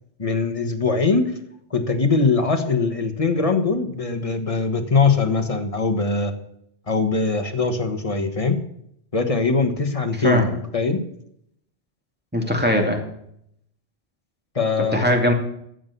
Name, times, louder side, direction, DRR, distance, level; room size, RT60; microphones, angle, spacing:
voice 1, 0.2-1.3 1.7-6.3 6.9-8.6 9.1-11.0 14.5-15.0, left 4 dB, 30° left, 6 dB, 1.5 m, -21 dB
voice 2, 10.1-10.5 12.3-13.0 14.8-15.3, equal, 10° right, 1 dB, 2.3 m, -20 dB
13.5 x 8.0 x 6.9 m, 0.73 s
omnidirectional pair, 1.2 m